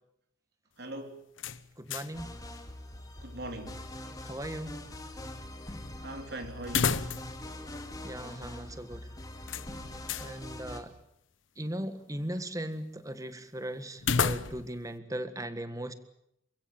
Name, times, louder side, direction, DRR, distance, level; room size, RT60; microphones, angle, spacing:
voice 1, 0.8-1.2 3.2-3.8 6.0-7.2, right 1 dB, 60° right, 3.3 m, -41 dB
sound 1, 1.4-2.3 2.6-2.7 6.6-7.5 7.8-7.9 9.5-10.3 14.0-14.8, left 5 dB, 85° left, 1.0 m, -31 dB
voice 2, 1.8-2.3 4.2-4.8 8.0-9.1 10.2-10.9 11.6-15.9, right 1 dB, 20° right, 1.7 m, -38 dB
sound 2, 2.1-10.8, left 1 dB, 20° left, 2.7 m, -43 dB
28.5 x 16.0 x 8.8 m
head